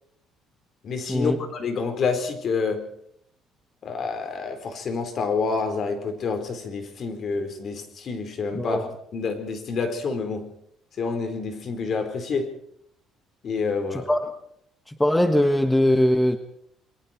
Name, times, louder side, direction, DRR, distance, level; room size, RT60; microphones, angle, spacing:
voice 1, 0.8-2.8 3.8-8.9 9.1-10.5 11.0-12.5 13.4-14.1, left 4 dB, 45° left, 7 dB, 4.3 m, -28 dB
voice 2, 8.5-8.9 13.9-14.3 14.9-16.4, left 1 dB, 5° left, 7 dB, 1.3 m, -21 dB
29.0 x 22.5 x 4.5 m, 0.72 s
cardioid pair, 135°, 0 cm